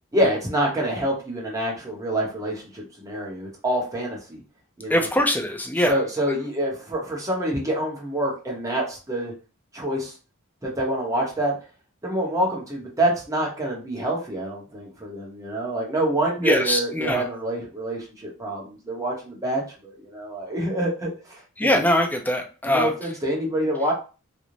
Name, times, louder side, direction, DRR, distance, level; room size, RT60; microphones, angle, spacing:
voice 1, 0.1-4.4 4.8-5.1 5.9-9.3 9.7-10.1 10.6-11.5 12.0-21.8 22.6-23.9, right 1 dB, 15° right, -2 dB, 0.8 m, -26 dB
voice 2, 4.9-5.9 16.4-17.2 21.6-22.9, left 1 dB, 10° left, 2 dB, 0.4 m, -22 dB
2.5 x 2.0 x 3.0 m, 0.35 s
head